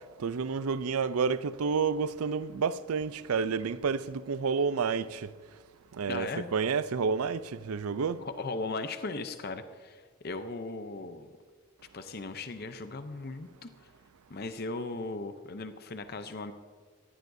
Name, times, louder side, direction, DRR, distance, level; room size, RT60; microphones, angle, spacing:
voice 1, 0.2-5.3 6.0-8.2, right 5 dB, 75° right, 0.5 m, -30 dB
voice 2, 6.1-6.5 8.2-11.3 11.9-13.9 14.3-16.5, left 3 dB, 45° left, 0.6 m, -37 dB
18.0 x 15.0 x 2.7 m
head